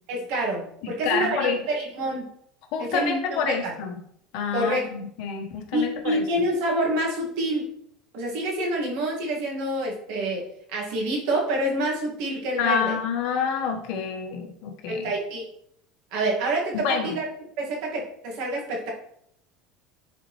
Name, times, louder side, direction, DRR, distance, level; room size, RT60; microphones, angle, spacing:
voice 1, 0.1-2.3 2.8-3.7 4.5-4.9 5.7-7.7 8.1-10.5 10.7-13.0 14.9-15.4 16.1-17.3 17.6-18.9, right 1 dB, 70° right, -1 dB, 2.1 m, -27 dB
voice 2, 0.8-1.6 2.7-4.0 4.3-6.2 12.6-15.1 16.8-17.2, left 6 dB, 65° left, 3 dB, 1.3 m, -28 dB
10.0 x 4.3 x 3.3 m, 0.71 s
cardioid pair, 150°, 0 cm